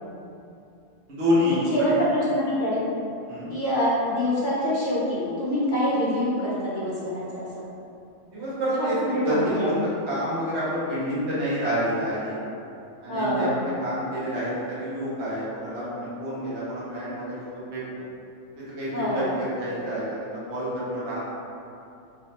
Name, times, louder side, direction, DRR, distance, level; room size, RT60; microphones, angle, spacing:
voice 1, 1.1-1.9 3.3-3.5 8.3-9.0 9.2-9.8 10.1-12.4 13.0-18.0 18.6-21.2, equal, 55° right, -9 dB, 1.2 m, -28 dB
voice 2, 1.7-2.9 3.5-7.7 8.8-9.7 13.1-13.6 18.9-19.3, equal, 50° left, -8 dB, 0.7 m, -25 dB
3.3 x 3.0 x 2.8 m, 2.6 s
omnidirectional pair, 1.4 m